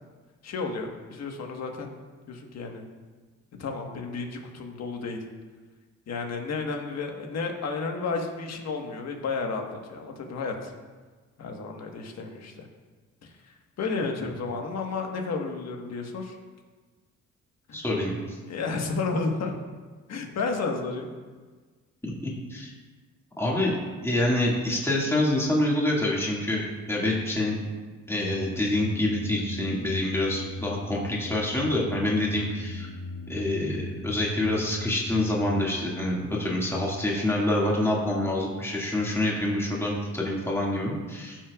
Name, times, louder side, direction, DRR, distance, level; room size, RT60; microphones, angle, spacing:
voice 1, 0.4-1.9 2.3-2.9 3.6-5.2 6.1-10.7 11.4-12.7 13.2-16.4 17.7-17.8 18.4-19.5 20.1-21.1, left 4 dB, 60° left, 3 dB, 1.5 m, -32 dB
voice 2, 17.7-18.2 22.0-22.7 23.4-23.8 24.0-27.6 28.1-32.9 33.3-41.4, left 1 dB, 10° left, -4 dB, 2.1 m, -26 dB
sound 1, 28.2-35.8, left 2 dB, 40° left, 1.0 m, -39 dB
14.5 x 6.1 x 2.4 m, 1.4 s
cardioid pair, 90°, 30 cm